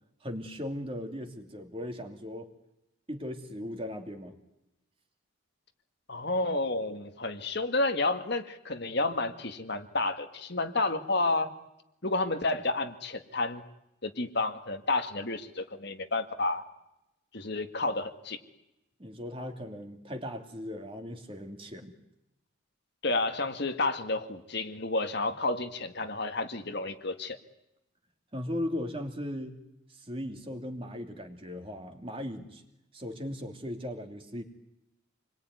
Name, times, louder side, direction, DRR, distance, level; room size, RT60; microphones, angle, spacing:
voice 1, 0.2-2.5 3.1-4.3 19.0-22.0 28.3-29.6 29.9-32.6 32.9-34.4, left 1 dB, 25° right, 4 dB, 2.8 m, -38 dB
voice 2, 6.1-11.5 12.0-13.6 14.0-16.6 17.3-18.4 23.0-27.4, left 2 dB, 55° left, 6 dB, 1.9 m, -30 dB
27.5 x 22.0 x 9.6 m, 0.87 s
head